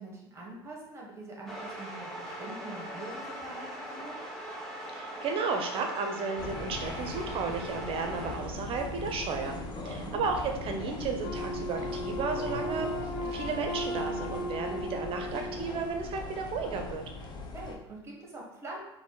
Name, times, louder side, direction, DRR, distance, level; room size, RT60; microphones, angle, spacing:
voice 1, 0.0-4.2 9.8-10.2 17.5-18.8, right 2 dB, 20° right, -2 dB, 1.5 m, -44 dB
sound 1, 1.5-8.4, right 1 dB, 5° left, 1.1 m, -40 dB
voice 2, 4.9-9.6 9.8-17.0, right 5 dB, 45° right, 4 dB, 0.6 m, -33 dB
sound 2, 6.4-17.8, left 3 dB, 35° left, 0.7 m, -39 dB
Wind instrument woodwind instrument, 11.2-16.2, equal, 70° left, 1.1 m, -37 dB
4.0 x 2.7 x 3.8 m, 0.86 s
hypercardioid pair, 85°, 14 cm